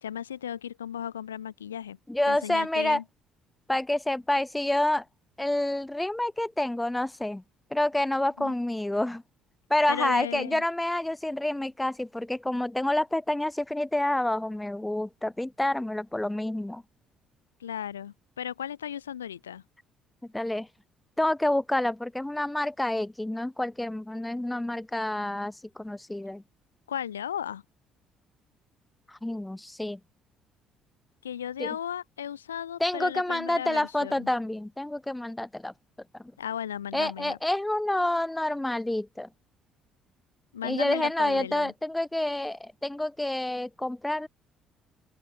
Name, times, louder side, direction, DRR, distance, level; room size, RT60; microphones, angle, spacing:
voice 1, 0.0-2.0 2.3-3.0 8.4-8.5 9.9-10.6 17.6-19.6 26.9-27.6 31.2-34.3 36.4-37.4 40.5-41.7, left 9 dB, 85° left, 1.3 m, -35 dB
voice 2, 2.1-3.0 3.7-5.0 5.4-7.4 7.7-9.2 9.7-16.8 20.3-20.7 21.2-26.4 29.1-30.0 31.6-31.7 32.8-35.7 36.9-39.3 40.6-44.3, left 1 dB, 10° left, 0.6 m, -28 dB
open air
figure-of-eight pair, 50°, 0 cm